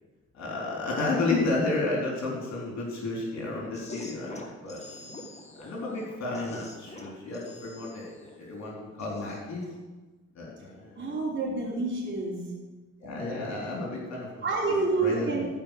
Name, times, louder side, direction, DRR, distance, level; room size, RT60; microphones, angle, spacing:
voice 1, 0.3-4.9 5.6-9.6 10.3-11.2 13.0-15.5, left 2 dB, 65° left, -3 dB, 3.8 m, -32 dB
sound 1, 3.7-9.8, left 1 dB, 20° left, 1.7 m, -46 dB
voice 2, 11.0-12.4 14.4-15.5, right 3 dB, 40° right, -7 dB, 3.3 m, -28 dB
14.0 x 5.5 x 6.7 m, 1.2 s
cardioid pair, 90°, 30 cm